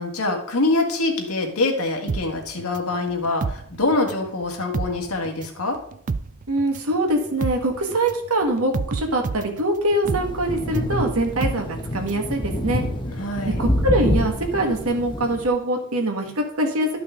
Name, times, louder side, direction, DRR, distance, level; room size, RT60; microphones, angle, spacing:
voice 1, 0.0-5.8 13.2-13.6, left 2 dB, 75° left, 3 dB, 1.8 m, -24 dB
sound 1, 2.1-4.3 4.6-12.3 12.6-12.7, right 4 dB, 35° right, 0.3 m, -30 dB
voice 2, 6.5-11.7 11.9-12.8 13.6-16.9, right 1 dB, 75° right, 3 dB, 1.8 m, -23 dB
sound 2, 10.0-15.5, equal, 20° left, 1.2 m, -27 dB
12.0 x 5.9 x 3.8 m, 0.68 s
head